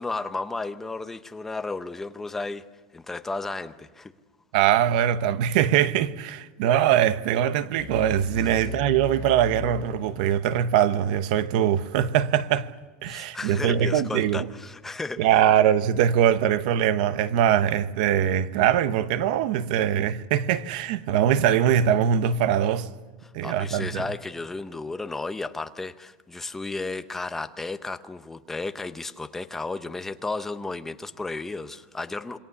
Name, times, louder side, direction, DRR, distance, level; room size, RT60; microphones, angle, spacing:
voice 1, 0.0-2.6 2.9-4.1 13.0-15.3 23.2-32.4, left 3 dB, 5° left, 0.7 m, -33 dB
voice 2, 4.5-12.7 13.0-14.5 15.2-22.9 23.3-24.0, right 10 dB, 55° right, 1.0 m, -22 dB
sound 1, 7.8-10.8, left 12 dB, 35° left, 2.1 m, -38 dB
27.5 x 22.0 x 7.1 m
supercardioid pair, 180°, 5 cm